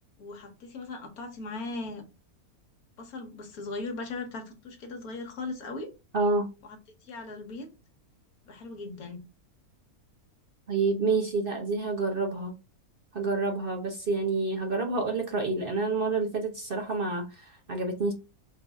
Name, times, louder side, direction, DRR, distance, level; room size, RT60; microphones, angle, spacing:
voice 1, 0.2-2.1 3.0-5.9 6.6-6.8 7.0-7.7 8.5-9.2, left 3 dB, 75° left, 1.5 m, -38 dB
voice 2, 6.1-6.5 10.7-12.5 13.1-18.1, right 3 dB, 45° right, 0.8 m, -28 dB
3.9 x 2.6 x 3.5 m
omnidirectional pair, 1.6 m